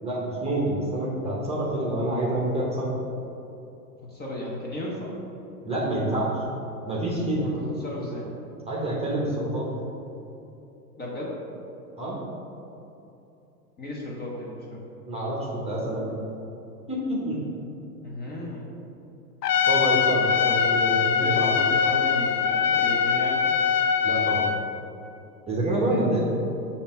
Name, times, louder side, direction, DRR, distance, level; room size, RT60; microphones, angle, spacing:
voice 1, 0.0-2.9 5.6-6.4 6.8-7.5 8.7-9.7 12.0-12.2 15.0-16.2 16.9-17.4 19.7-21.4 24.0-24.5 25.5-26.2, right 1 dB, 15° right, -5 dB, 1.0 m, -27 dB
voice 2, 4.1-5.1 7.3-8.3 11.0-11.4 13.8-14.8 18.0-18.7 20.4-20.6 21.1-23.6 25.8-26.0, left 1 dB, 20° left, -4 dB, 1.1 m, -34 dB
Trumpet, 19.4-24.7, left 7 dB, 75° left, 0.6 m, -22 dB
7.0 x 2.8 x 5.4 m, 2.9 s
figure-of-eight pair, 100°, 48 cm